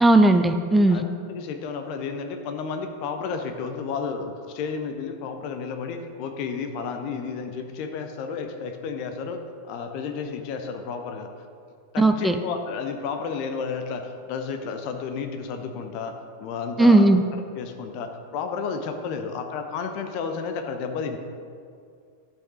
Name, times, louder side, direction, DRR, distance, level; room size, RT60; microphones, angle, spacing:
voice 1, 0.0-1.0 12.0-12.4 16.8-17.2, right 2 dB, 5° right, 7 dB, 0.5 m, -17 dB
voice 2, 0.9-11.3 11.9-17.1 17.6-21.2, left 5 dB, 45° left, 6 dB, 0.9 m, -32 dB
12.0 x 5.5 x 5.6 m, 2.3 s
figure-of-eight pair, 90°, 0 cm